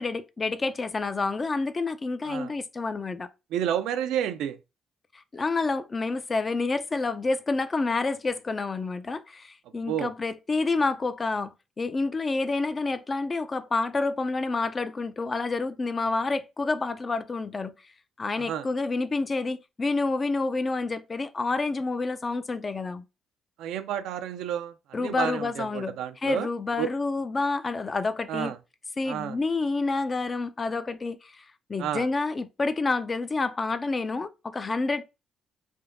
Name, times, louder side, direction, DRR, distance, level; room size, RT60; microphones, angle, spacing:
voice 1, 0.0-3.3 5.3-17.7 18.2-23.0 24.9-28.5 29.0-35.0, left 3 dB, 30° left, 0.4 m, -28 dB
voice 2, 3.5-4.6 9.9-10.1 18.5-18.7 23.6-26.5 26.8-26.9 28.3-28.6 29.1-29.4 31.8-32.1, right 10 dB, 85° right, 0.3 m, -30 dB
3.4 x 2.7 x 2.5 m
cardioid pair, 90°, 0 cm